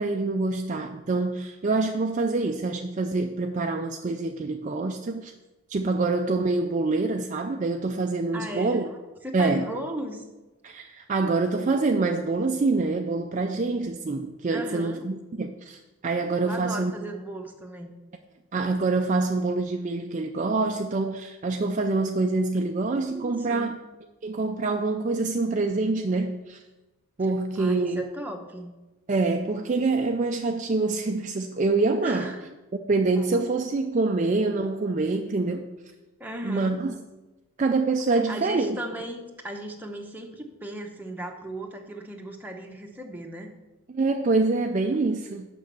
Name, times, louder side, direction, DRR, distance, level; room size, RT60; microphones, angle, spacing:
voice 1, 0.0-5.3 5.7-8.9 9.3-9.6 10.6-16.9 18.5-23.8 24.2-26.6 27.2-28.1 29.1-32.3 32.7-35.7 36.4-36.9 37.6-38.8 43.9-45.5, right 3 dB, 35° right, 4 dB, 0.4 m, -26 dB
voice 2, 8.3-8.9 9.2-10.2 14.5-15.1 16.4-17.9 23.1-23.7 27.5-28.7 32.0-32.5 36.2-36.8 38.1-43.5, right 1 dB, 10° right, 1 dB, 0.9 m, -36 dB
6.4 x 6.2 x 6.9 m, 1.1 s
head